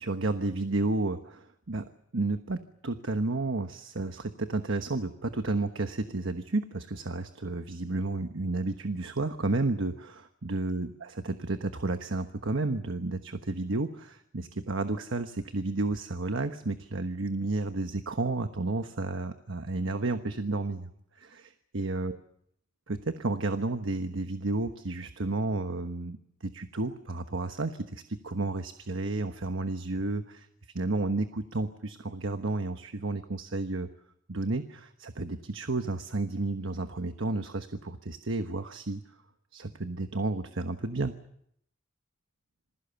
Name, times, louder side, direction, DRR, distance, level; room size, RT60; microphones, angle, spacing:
voice 1, 0.0-1.8 2.1-20.9 21.2-22.2 22.9-30.5 30.7-33.9 34.3-39.0 39.5-41.1, right 2 dB, 70° right, 8 dB, 1.2 m, -32 dB
27.5 x 21.0 x 7.0 m, 0.72 s
head